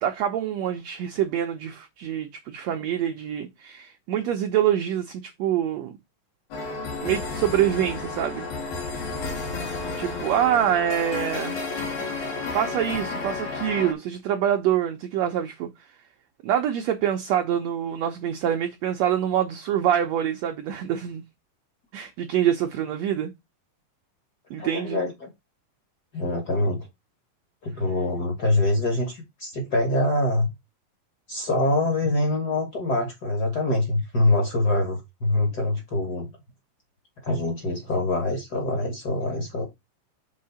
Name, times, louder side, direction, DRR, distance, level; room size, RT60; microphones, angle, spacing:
voice 1, 0.0-6.0 7.0-8.5 10.0-11.6 12.5-15.7 16.4-21.2 21.9-23.3 24.5-25.0, right 10 dB, 75° right, 1.6 m, -25 dB
sound 1, 6.5-13.9, left 3 dB, 85° left, 3.5 m, -32 dB
voice 2, 24.6-25.3 26.1-26.9 27.6-30.5 31.3-36.3 37.2-39.7, left 2 dB, 45° left, 1.3 m, -24 dB
6.5 x 3.8 x 5.5 m
omnidirectional pair, 4.0 m